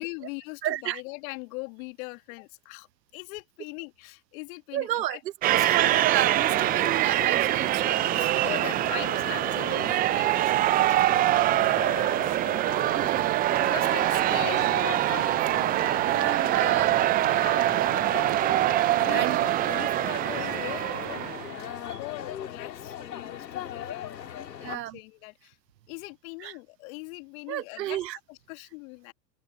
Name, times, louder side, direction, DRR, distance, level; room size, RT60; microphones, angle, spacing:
voice 1, 0.0-2.9 3.1-5.2 5.5-5.9 8.2-12.4 13.3-18.1 19.0-25.6 25.9-28.0 28.3-29.1, left 28 dB, 55° left, 2.5 m, -41 dB
voice 2, 0.6-1.0 4.7-5.2 5.4-8.2 9.6-9.8 12.9-13.7 16.1-16.9 18.5-19.4 21.8-22.0 24.6-25.0 26.4-26.5 27.5-28.2, right 14 dB, 90° right, 0.6 m, -32 dB
sound 1, 5.4-21.6, right 15 dB, 20° right, 0.4 m, -24 dB
sound 2, 5.5-24.8, left 10 dB, 85° left, 2.4 m, -39 dB
open air
hypercardioid pair, 95°, 49 cm